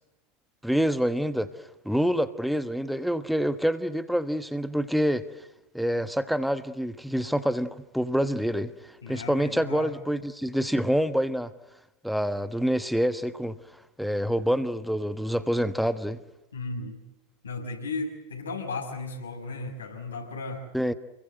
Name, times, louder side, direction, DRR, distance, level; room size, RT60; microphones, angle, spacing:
voice 1, 0.6-1.5 1.8-5.3 5.7-11.5 12.0-13.6 14.0-16.2 20.7-20.9, equal, ahead, 1.2 m, -26 dB
voice 2, 9.0-9.9 16.5-17.0 17.4-20.6, left 3 dB, 70° left, 6.2 m, -35 dB
29.0 x 22.0 x 7.9 m
figure-of-eight pair, 90°, 0 cm